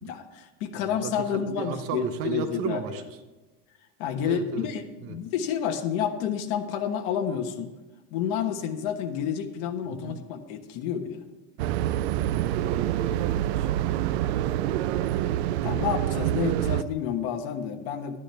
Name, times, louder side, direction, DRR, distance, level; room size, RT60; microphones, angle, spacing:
voice 1, 0.0-2.8 4.0-7.7 8.1-11.2 15.6-18.2, left 8 dB, 55° left, 4 dB, 1.3 m, -29 dB
voice 2, 0.7-3.2 4.2-4.7 5.0-5.2 9.8-10.2 12.5-14.3, right 8 dB, 45° right, 9 dB, 0.9 m, -35 dB
sound 1, 11.6-16.8, right 12 dB, 85° right, 0.6 m, -26 dB
12.0 x 11.0 x 3.4 m, 1.2 s
supercardioid pair, 160°, 32 cm